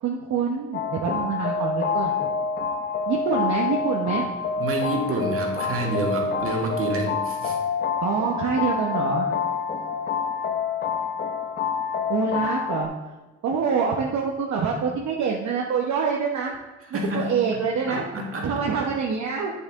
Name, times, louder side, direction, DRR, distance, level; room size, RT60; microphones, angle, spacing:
voice 1, 0.0-2.2 3.1-4.3 8.0-9.3 12.1-12.9 13.4-16.5 16.9-18.0 18.4-19.5, right 6 dB, 65° right, -1 dB, 1.0 m, -25 dB
sound 1, 0.7-12.9, left 5 dB, 35° left, 0.7 m, -27 dB
voice 2, 4.6-7.6 16.9-18.5, right 1 dB, 50° right, 0 dB, 1.9 m, -28 dB
8.1 x 6.8 x 3.6 m, 1.2 s
cardioid pair, 90°, 30 cm